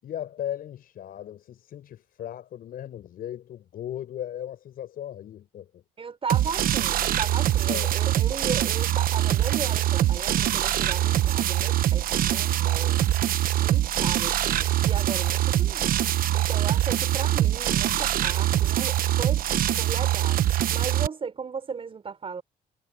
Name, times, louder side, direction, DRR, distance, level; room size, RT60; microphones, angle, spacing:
voice 1, 0.0-5.8 7.7-7.9, left 11 dB, 60° left, 6.7 m, -37 dB
voice 2, 6.0-13.0 13.6-15.9 16.3-19.4 19.8-20.4 20.7-22.4, right 5 dB, 35° right, 6.1 m, -36 dB
sound 1, 6.3-21.1, right 12 dB, 60° right, 1.0 m, -23 dB
cardioid pair, 110°, 17 cm